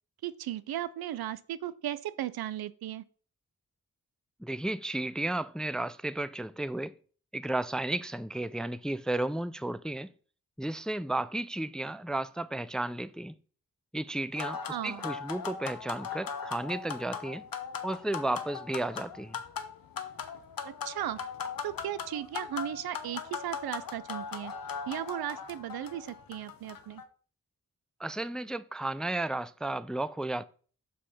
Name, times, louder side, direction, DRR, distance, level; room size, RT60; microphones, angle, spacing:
voice 1, 0.2-3.0 14.7-15.1 20.6-21.2 21.6-24.5 24.9-27.0, right 12 dB, 90° right, 0.5 m, -36 dB
voice 2, 4.4-7.0 7.3-10.1 10.6-13.3 13.9-17.5 17.8-19.4 28.0-30.4, right 2 dB, ahead, 0.3 m, -33 dB
sound 1, 14.3-27.0, left 6 dB, 70° left, 0.9 m, -39 dB
5.6 x 5.2 x 4.1 m
cardioid pair, 45°, 36 cm